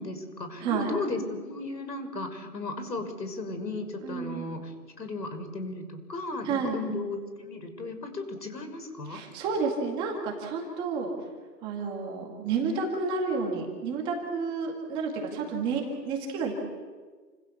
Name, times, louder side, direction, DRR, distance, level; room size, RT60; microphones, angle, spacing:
voice 1, 0.0-9.2, left 2 dB, 80° left, 7 dB, 6.5 m, -35 dB
voice 2, 4.0-4.5 6.4-6.8 9.1-11.1 11.6-16.5, right 4 dB, 10° right, 0 dB, 2.1 m, -30 dB
29.5 x 26.5 x 7.1 m, 1.4 s
hypercardioid pair, 165°, 49 cm